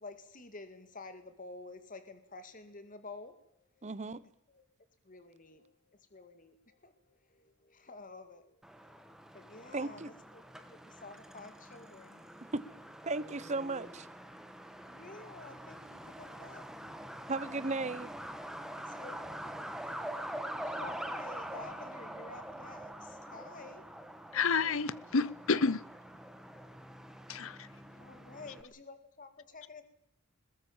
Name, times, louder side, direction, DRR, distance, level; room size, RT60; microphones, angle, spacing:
voice 1, 0.0-3.3 5.1-5.7 6.1-6.5 6.8-6.9 7.7-8.4 9.3-10.0 10.3-12.2 14.9-16.6 18.7-19.2 19.8-20.0 20.6-22.9 23.2-23.8 28.0-29.8, left 3 dB, 40° left, 2.0 m, -50 dB
voice 2, 3.8-4.2 9.7-10.1 12.5-12.8 13.0-14.1 17.3-18.1, right 3 dB, 30° right, 0.9 m, -35 dB
Truck, 8.6-28.6, right 1 dB, ahead, 1.6 m, -45 dB
voice 3, 24.3-25.8 27.3-27.7, left 4 dB, 65° left, 0.8 m, -30 dB
21.5 x 21.0 x 7.3 m
head